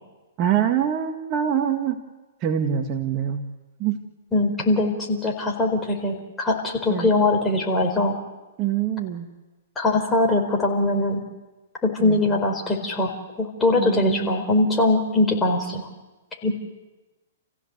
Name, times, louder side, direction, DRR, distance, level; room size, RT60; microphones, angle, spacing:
voice 1, 0.4-2.0 2.4-3.4 3.8-4.0 6.9-7.1 8.6-9.3 12.0-12.2 13.8-14.4, right 9 dB, 35° right, 4 dB, 1.8 m, -24 dB
voice 2, 4.3-8.2 9.8-11.2 11.8-13.1 13.4-15.8 16.4-16.5, left 2 dB, 10° left, 1 dB, 4.5 m, -22 dB
29.5 x 16.0 x 8.1 m, 1.1 s
hypercardioid pair, 125°, 0 cm